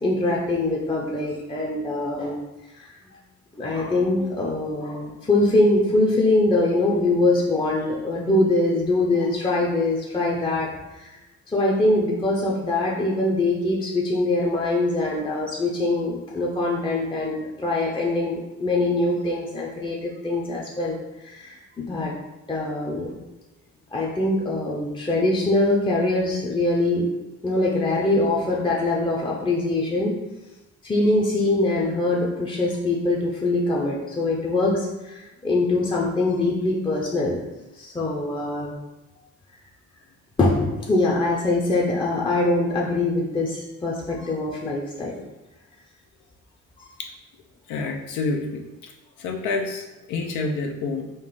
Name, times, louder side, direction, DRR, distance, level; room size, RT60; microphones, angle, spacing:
voice 1, 0.0-2.4 2.8-2.9 3.6-11.1 11.5-21.0 21.2-22.1 22.5-23.1 23.9-27.1 27.4-30.2 30.8-37.4 37.8-38.7 40.4-45.2, left 2 dB, 15° left, -3 dB, 0.6 m, -23 dB
voice 2, 47.7-48.9 49.2-51.2, left 3 dB, 80° left, 2 dB, 0.6 m, -29 dB
3.8 x 2.4 x 3.8 m, 1.0 s
cardioid pair, 90°, 30 cm